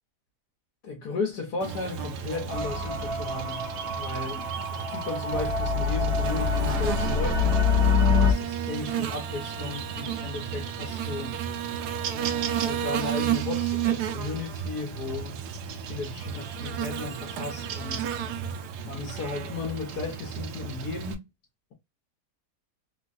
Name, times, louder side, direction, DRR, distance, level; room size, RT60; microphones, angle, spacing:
voice 1, 0.8-7.7 8.0-11.4 12.5-15.4 15.9-18.2 18.8-21.2, left 3 dB, 75° left, 1.6 m, -35 dB
Buzz, 1.6-21.1, right 8 dB, 80° right, 1.2 m, -32 dB
sound 1, 2.5-8.3, left 4 dB, 45° right, 0.9 m, -25 dB
3.7 x 2.2 x 2.4 m
omnidirectional pair, 1.8 m